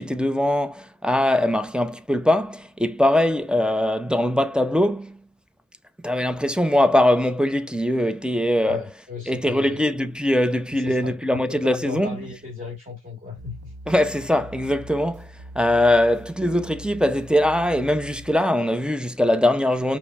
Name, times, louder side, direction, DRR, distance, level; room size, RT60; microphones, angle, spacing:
voice 1, 0.0-5.2 6.0-8.8 9.3-12.2 13.9-20.0, left 1 dB, 5° right, 0.3 m, -21 dB
voice 2, 8.6-9.8 10.7-13.7, left 3 dB, 20° right, 1.7 m, -36 dB
sound 1, 13.4-18.4, right 1 dB, 75° right, 0.6 m, -42 dB
5.3 x 2.1 x 2.2 m
wide cardioid pair, 65°, 37 cm